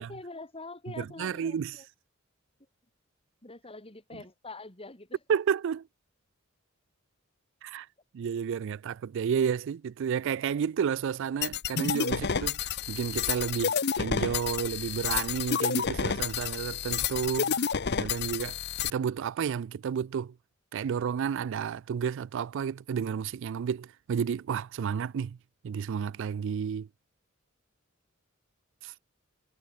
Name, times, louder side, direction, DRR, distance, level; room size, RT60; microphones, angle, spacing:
voice 1, 0.0-1.9 3.4-5.2, left 2 dB, 30° left, 4.4 m, -44 dB
voice 2, 1.0-1.7 5.3-5.9 7.6-7.9 8.1-17.6 18.0-20.3 20.7-25.4 25.6-26.9 28.8-28.9, right 7 dB, 65° right, 0.3 m, -31 dB
sound 1, 11.4-18.9, left 7 dB, 55° left, 0.8 m, -30 dB
head